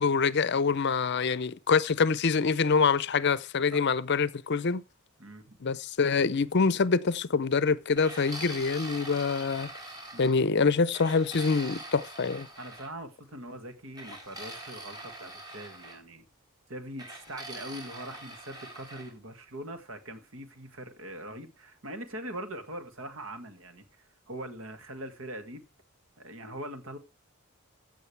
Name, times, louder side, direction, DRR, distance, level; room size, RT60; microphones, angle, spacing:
voice 1, 0.0-4.8 5.6-9.7 10.2-12.5, left 5 dB, 55° left, 0.6 m, -25 dB
voice 2, 5.2-5.6 10.1-10.3 12.6-16.3 16.7-25.6 26.2-27.0, right 1 dB, 70° right, 1.8 m, -42 dB
sound 1, 8.0-10.5 10.9-12.9 14.0-16.0 17.0-19.1, right 1 dB, 20° right, 3.6 m, -43 dB
15.5 x 6.3 x 3.3 m
head